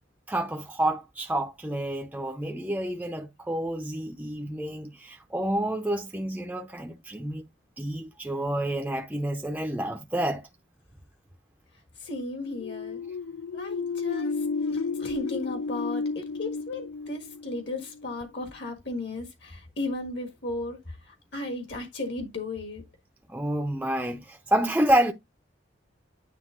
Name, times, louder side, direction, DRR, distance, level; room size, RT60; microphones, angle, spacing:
voice 1, 0.3-7.4 7.8-10.4 23.3-25.1, right 1 dB, 10° right, 0.6 m, -29 dB
voice 2, 12.0-13.0 13.5-14.4 14.7-22.8, left 2 dB, 55° left, 1.6 m, -35 dB
sound 1, 12.5-18.1, left 4 dB, 85° left, 0.5 m, -32 dB
9.4 x 3.4 x 3.7 m
head